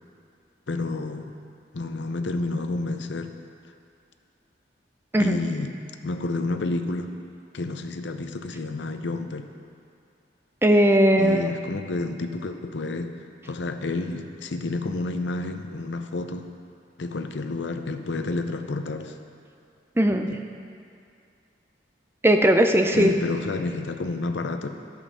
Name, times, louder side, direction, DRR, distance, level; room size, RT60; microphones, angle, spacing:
voice 1, 0.7-1.3 1.7-3.4 5.2-5.7 6.0-7.1 7.5-9.5 11.2-13.1 13.5-16.5 17.0-19.1 20.3-20.4 22.9-24.7, left 2 dB, 80° left, 7 dB, 0.6 m, -30 dB
voice 2, 10.6-11.5 20.0-20.3 22.2-23.1, equal, 15° right, 5 dB, 0.5 m, -18 dB
12.0 x 5.4 x 6.1 m, 2.4 s
head